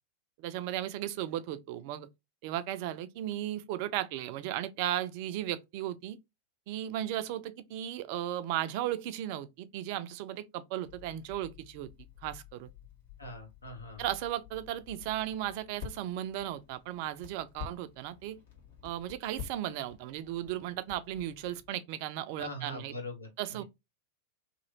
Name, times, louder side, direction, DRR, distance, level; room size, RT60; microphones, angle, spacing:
voice 1, 0.4-2.1 2.4-6.2 6.7-11.9 12.2-12.7 14.0-18.4 18.8-22.9 23.4-23.6, right 12 dB, 45° right, 0.4 m, -36 dB
Crackle, 10.8-21.7, left 8 dB, 60° left, 1.3 m, -50 dB
voice 2, 13.2-14.0 22.4-23.3, left 1 dB, 80° left, 0.9 m, -42 dB
2.9 x 2.6 x 2.8 m
figure-of-eight pair, 90°, 0 cm